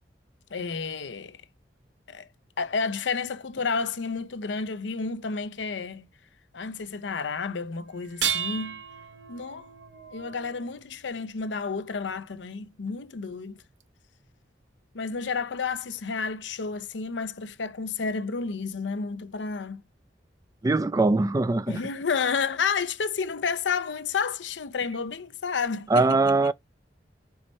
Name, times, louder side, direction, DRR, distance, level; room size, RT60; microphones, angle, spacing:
voice 1, 0.5-1.4 2.1-2.3 2.6-6.1 6.5-8.8 9.3-9.7 10.1-13.6 14.9-19.8 21.7-26.2, left 5 dB, 85° left, 0.6 m, -31 dB
sound 1, 8.0-11.3 12.9-13.0 13.8-13.9, right 8 dB, 80° right, 0.8 m, -34 dB
voice 2, 20.6-21.8 25.9-26.5, right 3 dB, 20° right, 0.3 m, -22 dB
4.7 x 4.2 x 5.3 m
head